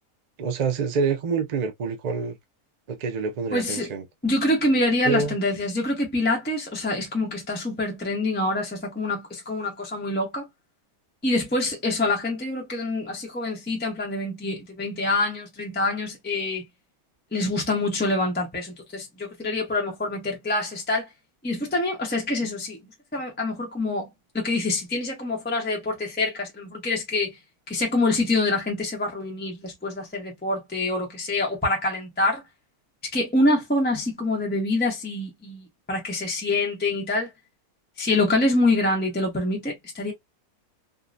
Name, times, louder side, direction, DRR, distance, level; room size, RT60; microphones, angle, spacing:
voice 1, 0.4-2.4 2.9-4.0 5.0-5.4, right 5 dB, 65° right, 0.4 m, -26 dB
voice 2, 3.5-3.9 4.2-10.5 11.2-16.6 17.3-21.1 21.4-22.8 23.1-24.1 24.3-27.3 27.7-32.4 33.1-37.3 38.0-40.1, left 2 dB, 10° left, 0.7 m, -26 dB
3.7 x 2.1 x 2.5 m
omnidirectional pair, 1.6 m